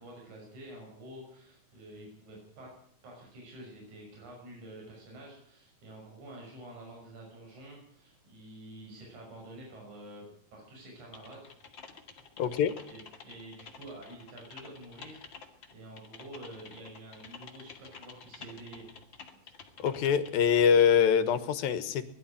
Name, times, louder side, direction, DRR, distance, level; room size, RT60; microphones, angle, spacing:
voice 1, 0.0-2.7 3.0-11.5 12.5-18.9, right 1 dB, 50° right, -1 dB, 7.2 m, -48 dB
Typing, 11.1-21.0, left 5 dB, 40° left, 2.2 m, -50 dB
voice 2, 12.4-12.7 19.8-22.1, left 7 dB, 75° left, 12 dB, 2.9 m, -24 dB
21.0 x 12.5 x 10.0 m, 0.66 s
omnidirectional pair, 4.4 m